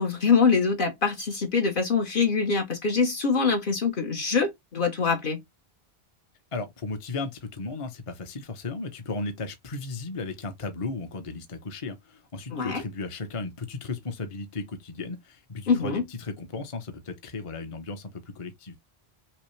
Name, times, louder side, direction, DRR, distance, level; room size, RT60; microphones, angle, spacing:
voice 1, 0.0-5.4 12.5-12.8 15.7-16.0, left 5 dB, 55° left, 1.1 m, -24 dB
voice 2, 6.5-18.8, left 3 dB, 35° left, 0.7 m, -35 dB
5.7 x 2.1 x 3.1 m
omnidirectional pair, 1.0 m